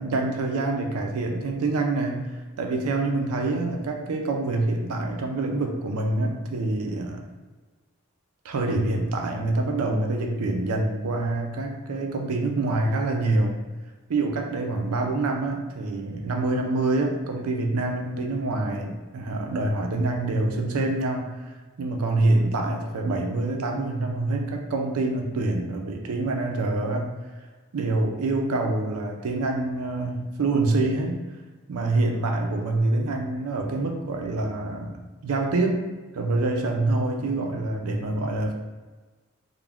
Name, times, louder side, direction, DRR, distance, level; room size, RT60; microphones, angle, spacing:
voice 1, 0.0-2.3 2.6-7.2 8.4-13.5 14.1-21.3 21.8-27.1 27.7-31.2 31.7-35.0 35.2-35.8 36.1-38.5, right 2 dB, 85° right, 2 dB, 0.4 m, -26 dB
2.4 x 2.1 x 3.3 m, 1.3 s
head